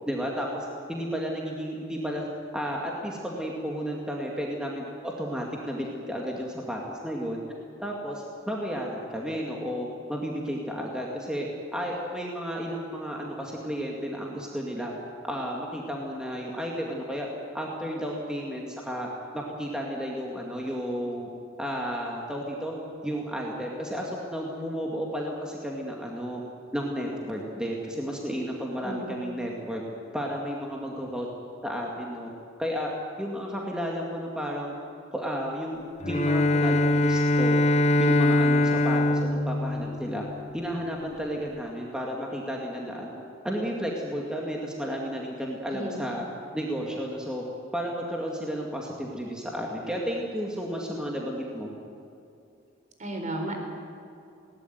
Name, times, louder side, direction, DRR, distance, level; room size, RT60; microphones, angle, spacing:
voice 1, 0.1-2.3 2.5-7.4 7.8-11.5 11.7-14.9 15.2-17.3 17.5-19.1 19.3-21.3 21.6-22.7 23.0-26.4 26.7-29.8 30.1-31.3 31.6-32.3 32.6-32.9 33.2-34.7 35.1-37.6 38.0-40.2 40.5-46.2 46.5-47.4 47.7-51.7, equal, 5° right, -2 dB, 2.3 m, -32 dB
voice 2, 28.8-29.2 45.7-46.0 53.0-53.5, right 1 dB, 40° right, 3 dB, 4.2 m, -33 dB
Bowed string instrument, 36.0-40.6, left 1 dB, 35° left, 0.8 m, -23 dB
20.5 x 18.5 x 9.4 m, 2.6 s
head